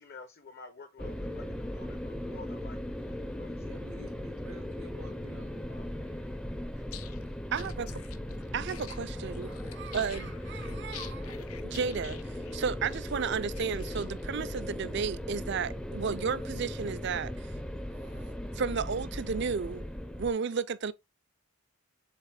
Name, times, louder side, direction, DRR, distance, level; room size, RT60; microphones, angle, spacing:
voice 1, 0.0-3.5, left 3 dB, 45° left, 0.7 m, -50 dB
sound 1, 1.0-20.3, left 1 dB, 5° left, 0.5 m, -38 dB
voice 2, 3.6-6.4 6.8-6.9, right 1 dB, 90° right, 2.1 m, -53 dB
sound 2, 6.8-14.4, left 11 dB, 80° left, 0.7 m, -50 dB
voice 3, 7.5-8.0 8.5-11.4 11.6-17.5 17.9-19.8 20.2-20.9, right 6 dB, 55° right, 0.4 m, -33 dB
7.4 x 3.9 x 3.3 m
head